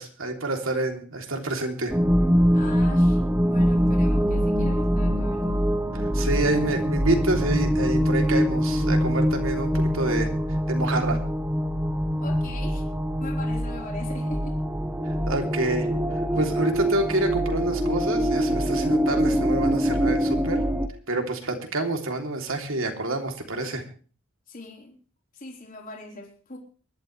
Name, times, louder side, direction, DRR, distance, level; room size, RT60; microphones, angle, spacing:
voice 1, 0.0-1.9 5.9-10.3 10.7-11.2 15.0-15.9 16.1-20.6 21.1-23.8, right 2 dB, 70° right, 4 dB, 3.0 m, -28 dB
sound 1, 1.9-20.9, equal, 10° right, 1.1 m, -24 dB
voice 2, 2.5-5.7 12.2-12.9 13.2-14.6 16.5-16.6 24.5-25.0 25.3-26.6, left 2 dB, 40° left, -1 dB, 4.1 m, -40 dB
24.0 x 12.0 x 3.3 m, 0.39 s
head